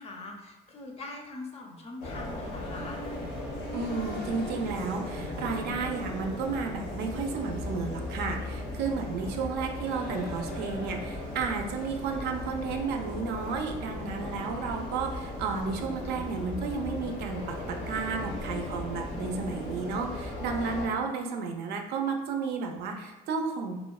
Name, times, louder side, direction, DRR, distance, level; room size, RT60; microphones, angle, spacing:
voice 1, 0.0-3.0, left 2 dB, 35° left, 2 dB, 0.4 m, -42 dB
sound 1, 2.0-20.9, left 1 dB, 80° left, 0.8 m, -37 dB
voice 2, 3.7-23.8, right 5 dB, 75° right, 3 dB, 0.4 m, -32 dB
2.9 x 2.0 x 2.3 m, 1.1 s
cardioid pair, 110°, 17 cm